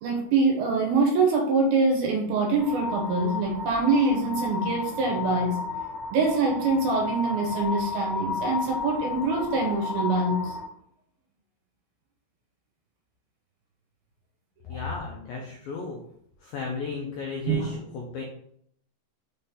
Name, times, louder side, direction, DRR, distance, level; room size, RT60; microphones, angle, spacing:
voice 1, 0.0-5.6 6.1-10.6 17.5-17.8, right 3 dB, 70° right, 1 dB, 2.5 m, -24 dB
sound 1, 2.6-10.6, left 3 dB, 30° left, 1.7 m, -33 dB
voice 2, 14.7-16.0 16.4-18.2, left 4 dB, 85° left, -1 dB, 2.0 m, -34 dB
6.3 x 4.2 x 3.8 m, 0.69 s
omnidirectional pair, 5.1 m